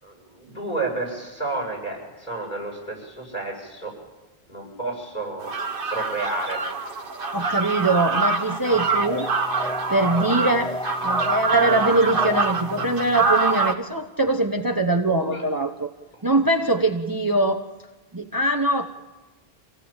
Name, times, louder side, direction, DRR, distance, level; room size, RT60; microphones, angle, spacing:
voice 1, 0.0-3.9 4.5-5.5 5.9-6.6 15.1-15.4 16.1-16.2, right 2 dB, 45° left, 0 dB, 7.7 m, -31 dB
sound 1, 5.4-13.7, right 4 dB, 55° right, 1.6 m, -25 dB
voice 2, 7.3-9.3 9.9-10.8 11.0-15.9 16.2-17.7 18.1-18.9, right 2 dB, 20° right, 5 dB, 1.0 m, -22 dB
sound 2, 8.7-13.4, left 1 dB, 5° left, 0.5 m, -32 dB
26.0 x 17.5 x 9.0 m, 1.2 s
omnidirectional pair, 1.1 m